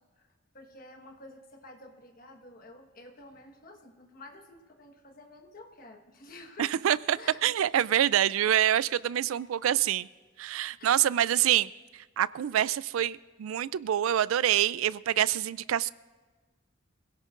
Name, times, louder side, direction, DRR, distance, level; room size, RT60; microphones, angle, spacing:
voice 1, 0.5-6.8 7.1-7.4 10.8-11.0, left 2 dB, 45° left, 1.4 m, -50 dB
voice 2, 6.6-10.1 10.4-15.9, right 11 dB, 85° right, 0.3 m, -26 dB
25.0 x 17.0 x 2.5 m
head